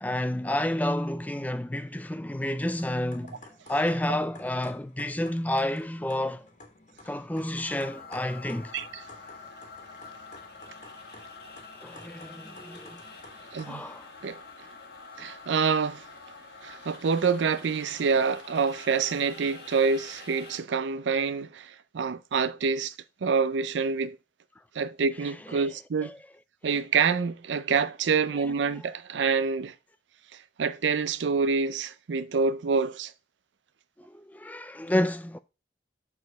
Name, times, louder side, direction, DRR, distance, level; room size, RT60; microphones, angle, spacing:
voice 1, 0.0-3.4 3.7-6.4 7.1-8.7 11.8-13.0 13.6-14.1 25.6-25.7 26.1-26.2 28.4-28.5 34.1-35.4, left 1 dB, 10° left, 0.3 m, -30 dB
sound 1, 2.3-13.7, left 2 dB, 45° left, 1.6 m, -52 dB
sound 2, 7.6-20.6, left 4 dB, 65° left, 1.5 m, -47 dB
voice 2, 8.7-9.0 13.5-13.9 14.2-14.4 15.2-16.0 16.6-22.9 23.2-24.2 24.8-26.1 26.6-29.7 30.6-33.1, right 5 dB, 90° right, 0.5 m, -27 dB
7.0 x 4.2 x 5.2 m
head